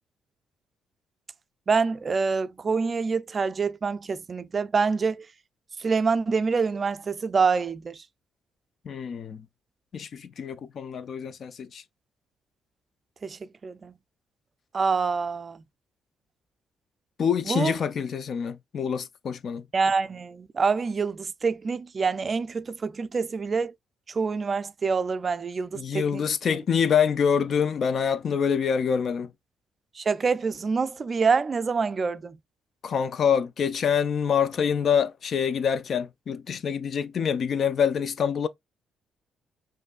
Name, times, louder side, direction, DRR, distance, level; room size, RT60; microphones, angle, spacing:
voice 1, 1.7-5.2 5.8-8.0 13.2-13.9 14.7-15.6 17.5-17.7 19.7-23.7 24.1-26.2 30.0-32.4, right 5 dB, 40° right, 0.3 m, -26 dB
voice 2, 8.9-9.4 9.9-11.8 17.2-19.6 25.7-29.3 32.8-38.5, left 7 dB, 55° left, 0.4 m, -26 dB
5.1 x 2.6 x 2.3 m
cardioid pair, 90°, 0 cm